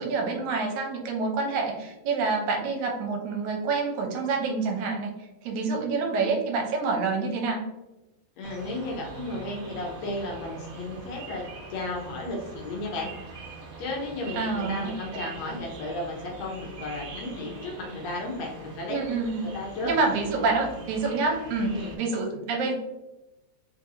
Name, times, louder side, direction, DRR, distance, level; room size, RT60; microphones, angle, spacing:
voice 1, 0.0-7.7 14.4-15.0 18.9-19.5 19.8-22.7, right 4 dB, 80° right, 1 dB, 2.1 m, -27 dB
voice 2, 8.4-11.5 11.7-13.1 13.8-19.0 19.5-19.9 21.7-21.9, left 2 dB, 75° left, -1 dB, 1.7 m, -34 dB
sound 1, 8.4-22.0, right 2 dB, 65° right, 1.7 m, -43 dB
4.6 x 2.7 x 2.6 m, 1.0 s
omnidirectional pair, 3.4 m